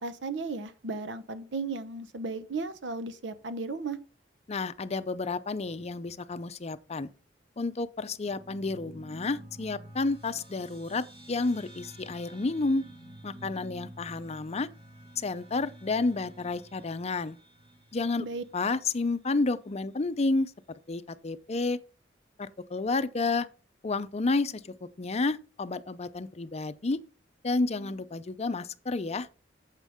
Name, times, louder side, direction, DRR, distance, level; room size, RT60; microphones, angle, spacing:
voice 1, 0.0-4.0 18.2-18.4, right 3 dB, 75° right, 0.9 m, -35 dB
voice 2, 4.5-7.1 7.6-12.9 13.2-14.7 15.2-17.4 17.9-18.3 18.5-20.5 20.9-21.8 22.4-23.5 23.8-27.0 27.4-29.3, left 3 dB, 35° left, 0.5 m, -30 dB
sound 1, 8.2-19.0, right 1 dB, 30° right, 2.6 m, -50 dB
9.1 x 7.4 x 3.6 m
head